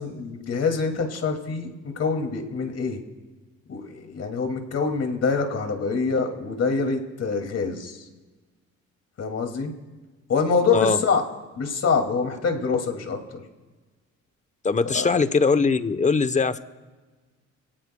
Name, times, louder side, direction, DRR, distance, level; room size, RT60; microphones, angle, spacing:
voice 1, 0.0-3.0 3.7-8.1 9.2-9.7 10.3-11.2 11.6-13.4 14.8-15.1, left 5 dB, 55° left, 5 dB, 2.3 m, -25 dB
voice 2, 14.6-16.6, left 4 dB, 25° left, 13 dB, 0.8 m, -21 dB
25.5 x 18.0 x 2.2 m, 1.3 s
cardioid pair, 90°, 30 cm